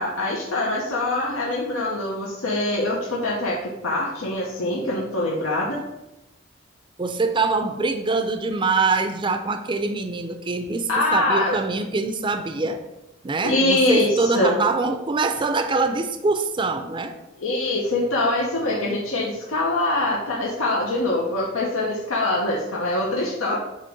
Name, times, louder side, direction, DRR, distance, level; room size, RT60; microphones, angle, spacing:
voice 1, 0.0-5.8 10.9-11.6 13.4-14.6 17.4-23.6, left 2 dB, 90° left, -3 dB, 0.9 m, -24 dB
voice 2, 7.0-12.8 13.2-17.1, right 3 dB, 25° right, 7 dB, 0.4 m, -24 dB
8.2 x 3.0 x 5.1 m, 0.96 s
head